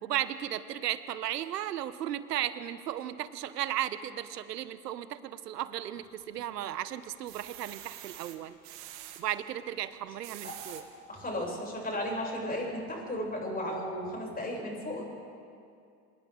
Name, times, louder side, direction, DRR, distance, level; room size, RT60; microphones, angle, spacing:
voice 1, 0.0-8.6 9.2-10.8, right 12 dB, 80° right, 14 dB, 1.0 m, -35 dB
sound 1, 6.0-6.6 7.0-9.2 10.0-10.8 11.5-11.6 11.9-12.0, right 14 dB, 65° right, 2.0 m, -46 dB
voice 2, 11.1-15.0, left 1 dB, 20° left, -2 dB, 7.4 m, -34 dB
26.5 x 26.5 x 3.8 m, 2.4 s
hypercardioid pair, 75°, 47 cm